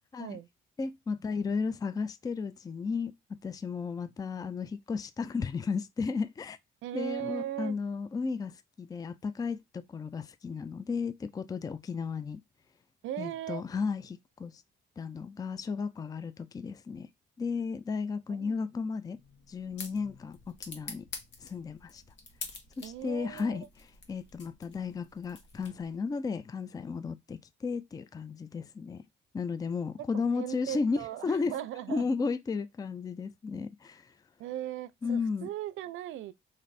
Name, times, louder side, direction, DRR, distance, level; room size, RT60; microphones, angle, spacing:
voice 1, 0.8-3.1 3.4-6.6 6.9-12.4 13.2-14.5 15.0-17.1 17.4-19.2 19.5-21.1 21.4-22.0 22.8-23.6 24.1-29.0 29.3-31.0 31.2-31.5 31.9-34.1 35.0-35.5, left 5 dB, 20° left, 0.3 m, -34 dB
voice 2, 6.8-7.8 13.0-13.6 18.3-18.6 22.8-23.7 30.0-32.1 34.4-36.3, right 12 dB, 80° right, 0.4 m, -38 dB
sound 1, 19.2-26.1, left 4 dB, 65° left, 1.2 m, -47 dB
3.1 x 2.6 x 4.0 m
cardioid pair, 90°, 20 cm